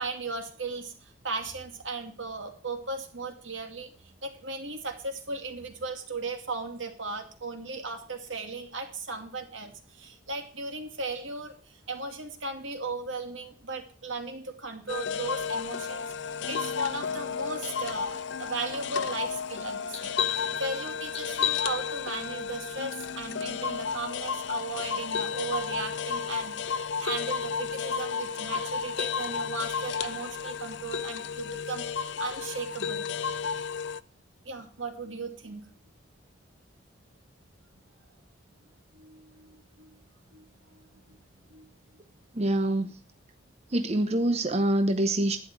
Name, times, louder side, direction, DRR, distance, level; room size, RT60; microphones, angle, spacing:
voice 1, 0.0-16.1 16.5-33.0 34.4-35.6 38.9-40.0 40.3-40.5 40.7-41.2 41.5-41.7, right 3 dB, 85° right, 5 dB, 2.4 m, -37 dB
sound 1, 14.9-34.0, left 6 dB, 65° left, 0.6 m, -32 dB
voice 2, 42.3-42.9 43.7-45.4, right 1 dB, 35° right, 8 dB, 0.8 m, -25 dB
12.0 x 10.0 x 4.7 m, 0.42 s
head